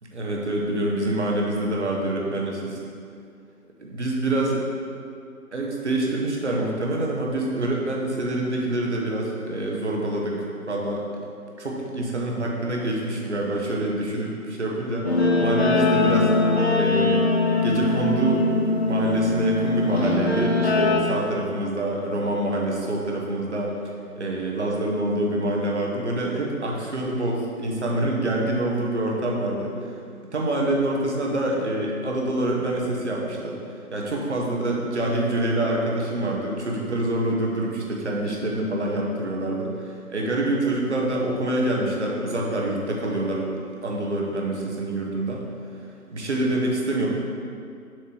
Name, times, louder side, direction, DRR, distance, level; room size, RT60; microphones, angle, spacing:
voice 1, 0.1-2.8 3.8-4.6 5.5-11.1 11.6-16.3 16.8-17.3 17.6-18.5 18.7-23.7 24.1-29.9 30.3-33.6 33.9-43.5 43.8-45.4 46.1-47.1, right 1 dB, 50° right, -2 dB, 1.3 m, -26 dB
Guitar, 15.0-21.0, left 2 dB, 45° left, 0.8 m, -21 dB
7.4 x 3.2 x 6.2 m, 2.4 s
figure-of-eight pair, 155°, 45 cm